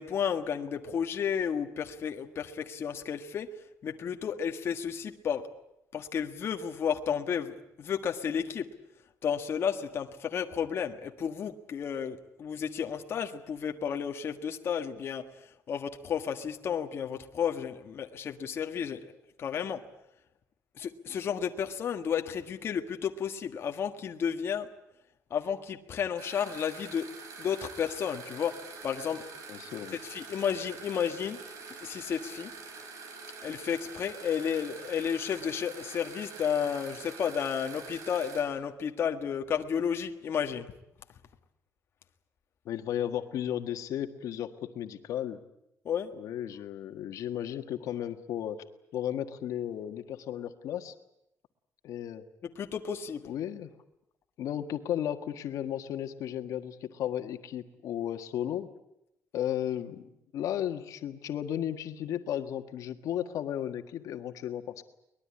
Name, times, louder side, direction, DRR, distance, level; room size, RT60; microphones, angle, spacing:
voice 1, 0.0-3.5 3.8-5.5 5.9-7.5 7.8-8.7 9.2-15.2 15.7-19.1 19.4-19.8 20.8-24.7 25.3-27.1 27.4-29.2 30.0-31.4 31.8-32.5 33.4-40.7 45.8-46.1 52.4-53.3, left 7 dB, 45° left, 5 dB, 1.5 m, -32 dB
sound 1, 26.2-38.4, right 4 dB, 70° right, 6.2 m, -46 dB
voice 2, 29.5-30.0 42.6-45.4 46.1-48.6 48.9-50.9 51.8-52.2 53.2-53.7 54.4-58.7 59.3-64.8, left 10 dB, 75° left, 8 dB, 1.6 m, -34 dB
23.5 x 20.5 x 9.8 m, 0.83 s
cardioid pair, 170°, 6 cm